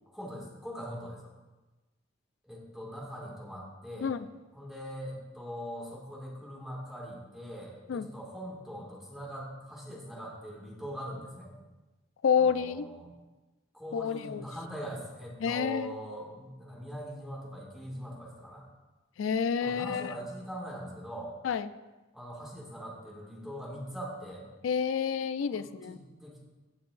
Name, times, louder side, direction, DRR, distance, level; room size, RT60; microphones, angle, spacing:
voice 1, 0.1-1.3 2.4-4.1 4.5-11.5 12.4-13.1 13.7-18.6 19.6-21.3 22.1-24.5 25.5-26.4, equal, ahead, -4 dB, 2.0 m, -42 dB
voice 2, 12.2-12.9 13.9-14.4 15.4-15.9 19.2-20.2 21.4-21.7 24.6-26.0, left 7 dB, 90° left, 14 dB, 0.4 m, -29 dB
15.5 x 6.6 x 2.5 m, 1.2 s
head